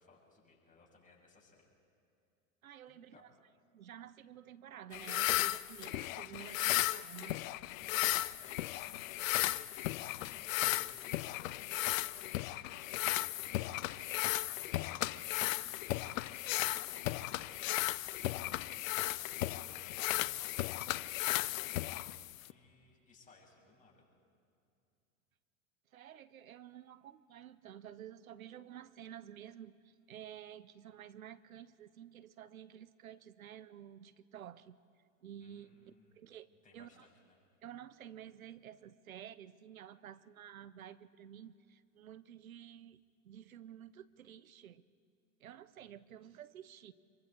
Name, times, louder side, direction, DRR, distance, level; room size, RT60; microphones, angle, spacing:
voice 1, 0.0-1.7 2.9-3.2 7.8-16.3 16.6-17.8 18.0-20.6 21.2-24.1 35.4-36.2 36.6-37.4, left 3 dB, 20° left, -3 dB, 6.6 m, -62 dB
voice 2, 2.6-3.3 3.7-7.5 25.9-34.8 35.2-37.1 37.6-44.8 45.4-46.9, right 10 dB, 90° right, 17 dB, 0.7 m, -52 dB
sound 1, 4.9-22.5, left 16 dB, 70° left, 0.6 m, -35 dB
26.5 x 23.0 x 4.6 m, 2.5 s
hypercardioid pair, 80°, 41 cm